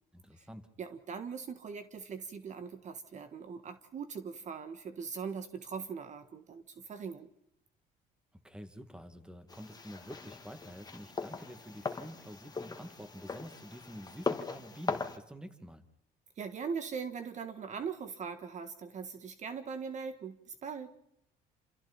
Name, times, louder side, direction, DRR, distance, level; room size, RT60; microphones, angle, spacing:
voice 1, 0.1-0.7 8.4-15.8, equal, 5° right, 8 dB, 2.3 m, -48 dB
voice 2, 0.8-7.3 16.4-20.9, right 6 dB, 45° right, 9 dB, 1.6 m, -41 dB
sound 1, 9.5-15.2, left 4 dB, 25° left, 1.9 m, -39 dB
28.0 x 27.5 x 4.4 m, 0.78 s
cardioid pair, 110°, 17 cm